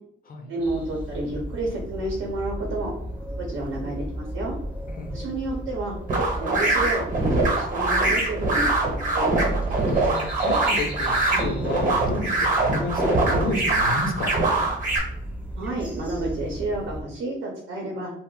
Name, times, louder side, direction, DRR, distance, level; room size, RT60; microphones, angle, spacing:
voice 1, 0.5-4.5 5.1-5.9 6.3-9.3 15.6-18.1, right 2 dB, 75° right, -1 dB, 0.8 m, -30 dB
sound 1, 0.6-17.0, right 1 dB, 5° right, 0.6 m, -34 dB
voice 2, 4.9-5.2 9.8-14.4, left 2 dB, 45° left, 4 dB, 0.6 m, -31 dB
sound 2, 6.1-15.0, right 2 dB, 40° right, 0.9 m, -23 dB
2.3 x 2.0 x 3.7 m, 0.73 s
cardioid pair, 90°, 20 cm